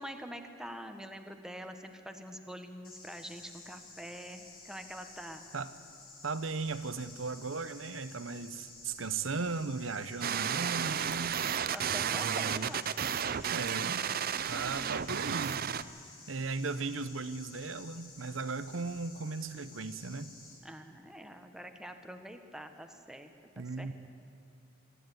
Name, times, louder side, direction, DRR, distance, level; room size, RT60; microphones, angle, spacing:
voice 1, 0.0-5.4 11.7-12.8 14.5-14.9 20.6-23.9, equal, 5° right, 6 dB, 1.3 m, -45 dB
sound 1, 2.8-20.5, left 3 dB, 50° left, 6.7 m, -52 dB
voice 2, 6.2-11.4 12.1-12.7 13.5-14.1 14.5-15.6 16.3-20.3 23.6-23.9, right 4 dB, 85° right, 13 dB, 0.9 m, -37 dB
sound 2, 10.2-15.8, right 8 dB, 50° right, 0.6 m, -32 dB
25.5 x 11.5 x 9.6 m, 2.6 s
head